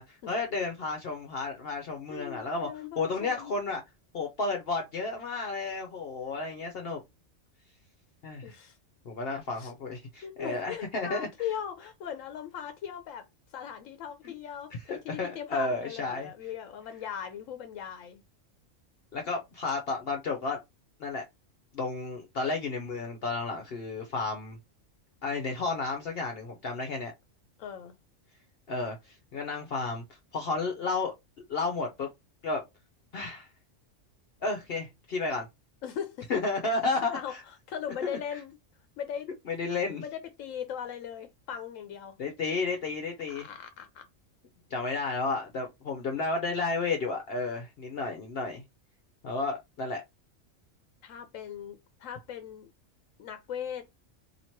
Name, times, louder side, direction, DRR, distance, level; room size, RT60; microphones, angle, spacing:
voice 1, 0.0-2.7 3.0-3.8 4.1-7.0 8.2-8.6 9.1-11.3 14.9-16.3 19.1-20.6 21.0-21.2 21.7-24.6 25.2-27.1 28.7-30.0 30.3-31.1 31.5-32.1 32.4-32.6 33.1-33.5 34.4-35.5 36.3-37.4 38.0-38.2 39.5-40.0 42.2-43.5 44.7-48.6 49.2-50.0, left 3 dB, 55° left, 0.8 m, -32 dB
voice 2, 2.1-3.5 8.4-8.8 9.5-9.8 10.2-13.2 13.5-18.2 27.6-27.9 35.8-36.3 36.9-38.6 39.0-39.3 40.0-42.2 43.3-44.1 51.0-52.7 53.2-53.9, left 9 dB, 80° left, 1.0 m, -39 dB
2.9 x 2.8 x 4.4 m
omnidirectional pair, 1.3 m